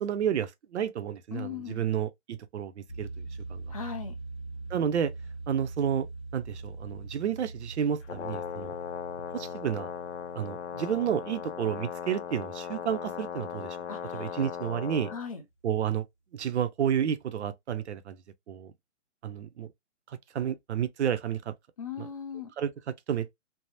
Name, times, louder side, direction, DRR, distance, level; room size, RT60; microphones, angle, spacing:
voice 1, 0.0-3.2 3.5-3.6 4.7-5.1 5.5-6.1 6.3-8.8 9.3-9.9 10.3-13.8 14.1-15.1 15.6-16.1 16.3-18.2 18.5-18.7 19.2-19.7 20.1-21.5 22.0-22.1 22.6-23.3, right 9 dB, 65° right, 0.6 m, -31 dB
voice 2, 1.3-1.9 3.7-4.1 13.9-14.4 15.1-15.4 21.8-22.5, left 7 dB, 30° left, 0.6 m, -38 dB
sound 1, 2.9-13.7, right 3 dB, 5° left, 0.9 m, -43 dB
Brass instrument, 8.0-15.2, left 8 dB, 70° left, 0.6 m, -38 dB
3.3 x 2.0 x 2.6 m
hypercardioid pair, 170°, 36 cm